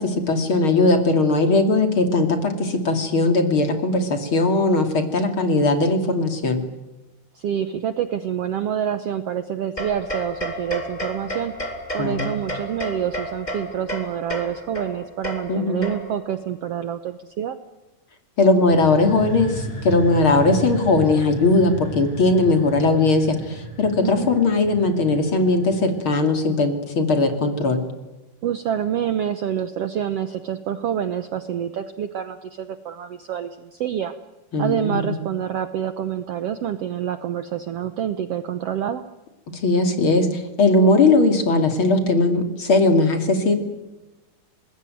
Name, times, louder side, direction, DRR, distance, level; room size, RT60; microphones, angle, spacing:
voice 1, 0.0-6.6 12.0-12.3 15.5-15.9 18.4-27.8 34.5-35.1 39.6-43.5, left 2 dB, 40° left, 6 dB, 3.1 m, -19 dB
voice 2, 7.3-11.5 11.9-17.6 24.0-24.3 28.4-34.1 34.6-39.0, right 9 dB, 65° right, 11 dB, 1.6 m, -27 dB
sound 1, 9.8-16.3, equal, 15° left, 3.3 m, -32 dB
sound 2, 18.6-26.3, equal, 60° left, 8.3 m, -34 dB
25.5 x 21.0 x 9.3 m, 1.0 s
omnidirectional pair, 3.8 m